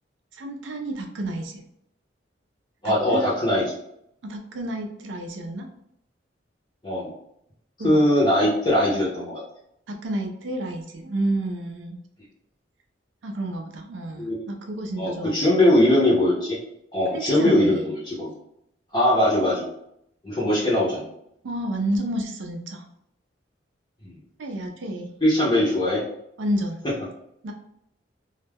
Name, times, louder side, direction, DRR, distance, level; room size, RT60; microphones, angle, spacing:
voice 1, 0.3-1.6 2.8-3.3 4.2-5.7 7.8-8.0 9.9-12.0 13.2-15.8 17.1-17.9 21.4-22.8 24.4-25.1 26.4-26.8 27.4-27.5, right 1 dB, 75° right, 3 dB, 0.4 m, -30 dB
voice 2, 2.8-3.8 6.8-7.1 7.8-9.4 14.2-14.4 15.0-16.6 16.9-18.3 18.9-19.7 20.2-21.1 24.0-24.1 25.2-26.0, left 1 dB, 20° left, -8 dB, 0.6 m, -21 dB
2.2 x 2.0 x 3.3 m, 0.75 s
head